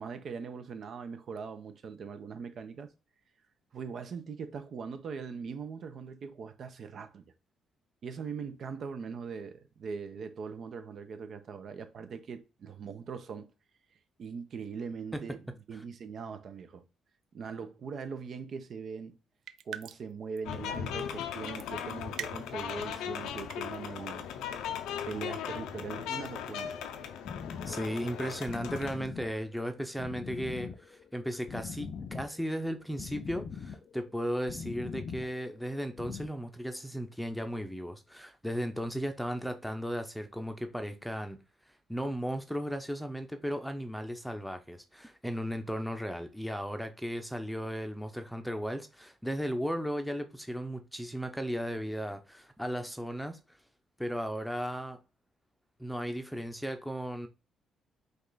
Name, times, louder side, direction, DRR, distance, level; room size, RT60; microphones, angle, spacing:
voice 1, 0.0-2.9 3.7-7.2 8.0-13.5 14.2-15.4 15.7-16.8 17.3-19.1 19.6-24.3 25.1-26.8, right 5 dB, 55° right, 0.8 m, -41 dB
sound 1, 19.5-20.1 20.4-20.5 21.5-21.7 22.2-22.7 23.3-23.8, right 10 dB, 75° right, 0.4 m, -41 dB
sound 2, 20.4-29.0, left 9 dB, 90° left, 0.6 m, -38 dB
sound 3, 27.2-36.3, left 6 dB, 50° left, 0.5 m, -43 dB
voice 2, 27.7-41.4 41.9-53.4 54.0-55.0 55.8-57.3, equal, ahead, 0.7 m, -35 dB
5.2 x 2.5 x 4.0 m
cardioid pair, 90°, 0 cm